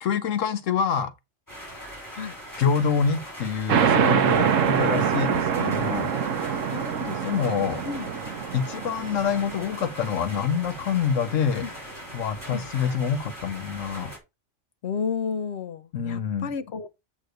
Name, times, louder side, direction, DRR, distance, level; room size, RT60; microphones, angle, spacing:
voice 1, 0.0-1.1 2.6-6.1 7.2-7.8 8.5-11.6 12.1-14.1 15.9-16.5, left 7 dB, 85° left, 1.3 m, -26 dB
sound 1, 1.5-14.2, equal, 15° left, 3.7 m, -41 dB
sound 2, 3.7-10.9, right 7 dB, 90° right, 1.2 m, -25 dB
voice 2, 6.7-7.6 7.8-8.1 11.6-11.7 12.5-12.7 14.8-16.9, left 5 dB, 60° left, 1.1 m, -32 dB
7.9 x 3.8 x 6.4 m
omnidirectional pair, 1.3 m